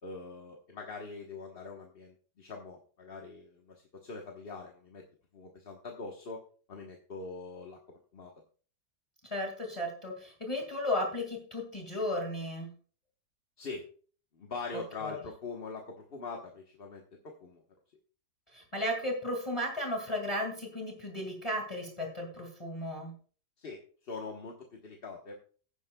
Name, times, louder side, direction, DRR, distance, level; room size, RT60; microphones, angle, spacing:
voice 1, 0.0-5.0 5.3-6.4 6.7-7.8 8.1-8.3 13.6-13.9 14.3-17.6 23.6-25.3, left 4 dB, 40° left, 1 dB, 1.2 m, -43 dB
voice 2, 9.3-12.7 15.0-15.2 18.5-23.1, left 1 dB, 15° left, 2 dB, 2.1 m, -34 dB
16.0 x 9.7 x 2.3 m, 0.41 s
omnidirectional pair, 1.8 m